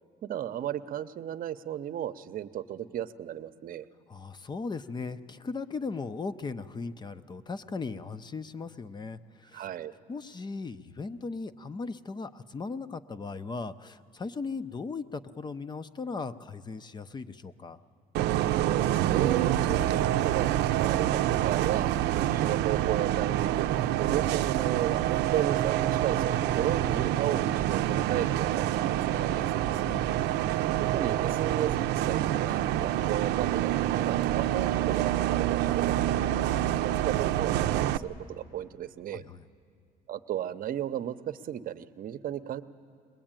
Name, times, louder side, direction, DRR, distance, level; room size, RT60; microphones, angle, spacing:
voice 1, 0.2-3.9 9.5-9.9 18.5-23.7 24.0-29.9 30.8-39.2 40.1-42.6, right 11 dB, 55° right, 12 dB, 0.8 m, -34 dB
voice 2, 4.1-9.7 10.1-17.8 29.8-30.2 39.1-39.5, left 4 dB, 25° left, 13 dB, 0.7 m, -38 dB
Bus, 18.1-38.0, right 12 dB, 85° right, 0.6 m, -27 dB
21.5 x 21.0 x 9.0 m, 2.2 s
cardioid pair, 110°, 17 cm